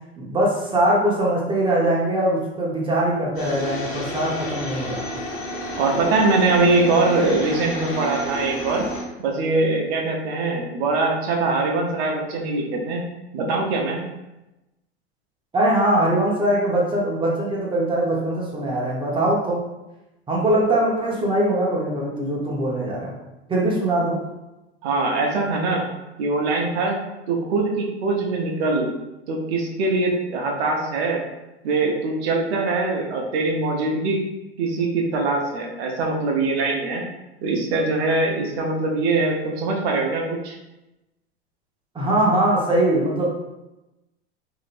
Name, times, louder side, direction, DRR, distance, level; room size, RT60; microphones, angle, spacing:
voice 1, 0.2-5.0 15.5-19.6 20.3-23.1 23.5-24.2 41.9-43.3, right 1 dB, 15° right, -4 dB, 1.0 m, -21 dB
sound 1, 3.4-9.0, left 1 dB, 40° left, 0.9 m, -31 dB
voice 2, 5.8-8.9 9.2-13.1 13.3-14.0 24.8-25.9 26.2-27.0 27.3-28.9 29.3-31.2 31.6-34.2 34.6-37.1 37.4-40.6, right 3 dB, 65° right, 0 dB, 0.8 m, -22 dB
2.9 x 2.6 x 2.5 m, 0.98 s
hypercardioid pair, 100°, 34 cm